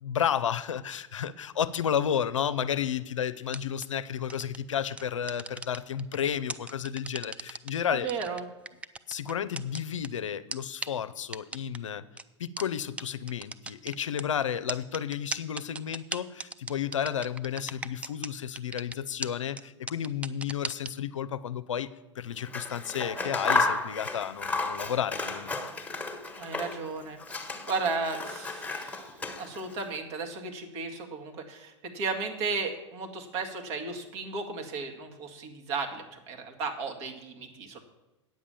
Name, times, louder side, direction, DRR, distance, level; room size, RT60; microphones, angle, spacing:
voice 1, 0.0-8.1 9.1-12.0 12.4-21.9 22.2-25.6, left 8 dB, 80° left, 14 dB, 0.5 m, -32 dB
sound 1, 3.5-3.9 4.3-4.6 5.0-6.2 6.5-7.7 8.1-10.1 10.5-10.6 10.8-10.9 11.3-11.8 12.2-12.3 12.6-12.7 13.0-13.1 13.3-14.2 14.7-18.3 18.6-18.9 19.2-19.3 19.6-19.7 19.9-20.9, right 3 dB, 10° right, 0.4 m, -36 dB
voice 2, 7.9-8.5 26.4-37.8, right 4 dB, 55° right, 3 dB, 1.9 m, -35 dB
Scissors, 22.4-26.9 27.2-29.8, left 3 dB, 10° left, 1.3 m, -32 dB
9.2 x 7.3 x 7.0 m, 1.0 s
hypercardioid pair, 95°, 16 cm